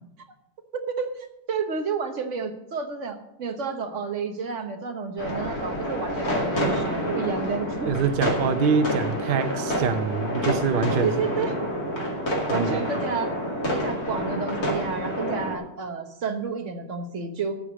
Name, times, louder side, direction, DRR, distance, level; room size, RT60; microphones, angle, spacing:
voice 1, 1.5-7.9 10.7-11.6 12.5-13.3 13.7-17.6, right 5 dB, 45° right, 5 dB, 1.4 m, -30 dB
sound 1, 5.2-15.6, equal, 55° left, 2.9 m, -28 dB
voice 2, 7.9-11.1 12.5-12.8, right 5 dB, 85° right, 10 dB, 0.4 m, -24 dB
14.0 x 5.0 x 7.5 m, 0.85 s
omnidirectional pair, 1.9 m